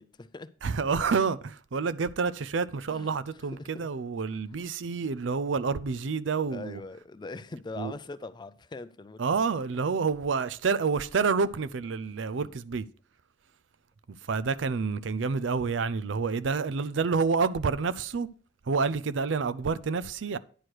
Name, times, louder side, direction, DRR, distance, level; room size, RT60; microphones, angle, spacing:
voice 1, 0.0-0.6 2.9-3.1 3.5-3.9 6.5-9.2 12.3-12.4, left 3 dB, 25° left, 0.4 m, -42 dB
voice 2, 0.6-6.8 7.8-7.9 9.2-12.9 14.1-18.3 18.6-20.4, right 5 dB, 85° right, 0.5 m, -28 dB
10.0 x 4.8 x 6.2 m
head